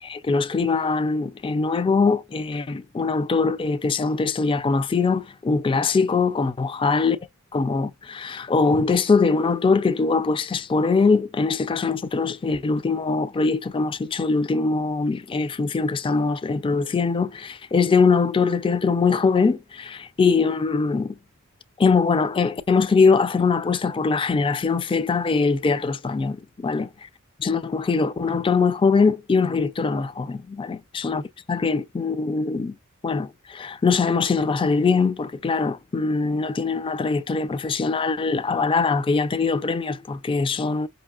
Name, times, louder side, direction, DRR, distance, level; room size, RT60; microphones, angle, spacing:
voice 1, 0.0-7.2 7.5-21.1 21.8-26.9 27.4-31.2 31.5-32.8 33.0-40.9, left 4 dB, 25° left, 0.3 m, -22 dB
5.3 x 2.7 x 2.3 m
head